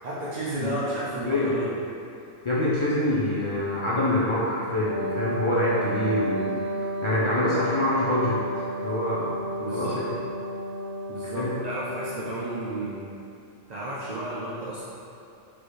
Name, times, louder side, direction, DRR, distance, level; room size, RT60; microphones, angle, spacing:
voice 1, 0.0-1.8 9.6-10.0 11.1-13.2 13.7-14.8, right 1 dB, 60° right, -8 dB, 0.4 m, -32 dB
voice 2, 2.4-6.5 7.0-9.3 9.7-10.2 11.2-11.5, left 1 dB, 35° left, -9 dB, 0.5 m, -25 dB
Wind instrument woodwind instrument, 4.8-12.9, right 1 dB, 75° left, 1.1 m, -32 dB
4.2 x 3.3 x 3.2 m, 2.5 s
omnidirectional pair, 1.3 m